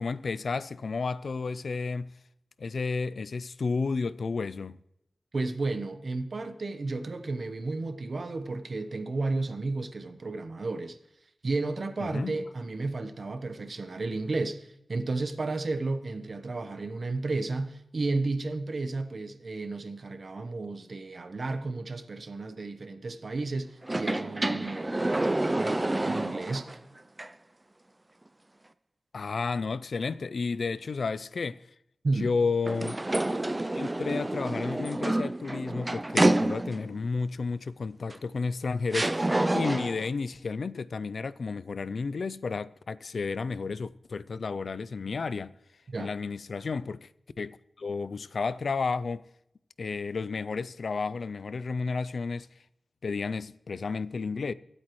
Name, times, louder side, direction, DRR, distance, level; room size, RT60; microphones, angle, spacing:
voice 1, 0.0-2.1 2.6-4.8 12.0-12.4 29.1-31.7 32.2-33.0 33.7-45.5 46.0-47.1 47.4-49.2 49.8-52.5 53.0-54.5, left 4 dB, 75° left, 0.4 m, -32 dB
voice 2, 5.3-11.0 11.4-26.8 32.0-32.3 45.9-46.1, right 3 dB, 60° right, 1.0 m, -33 dB
sound 1, 23.8-26.8 27.2-27.3 32.6-37.0 38.1-38.2 38.9-40.1, right 1 dB, 25° right, 0.4 m, -28 dB
23.5 x 8.4 x 3.1 m
wide cardioid pair, 90°, 0 cm